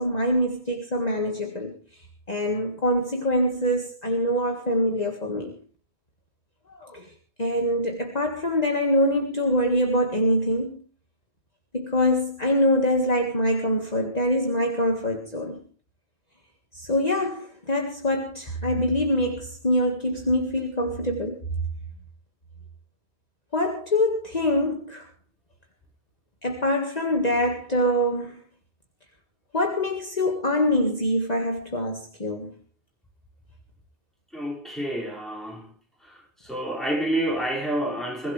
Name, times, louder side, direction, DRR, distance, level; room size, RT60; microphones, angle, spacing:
voice 1, 0.0-1.8 2.3-5.6 6.7-7.1 7.4-10.8 11.7-15.6 16.7-21.4 23.5-25.1 26.4-28.4 29.5-32.6, left 1 dB, 35° left, 2.0 m, -24 dB
voice 2, 34.3-35.7 36.0-38.3, right 1 dB, ahead, 5.6 m, -29 dB
22.5 x 16.0 x 3.4 m
omnidirectional pair, 1.2 m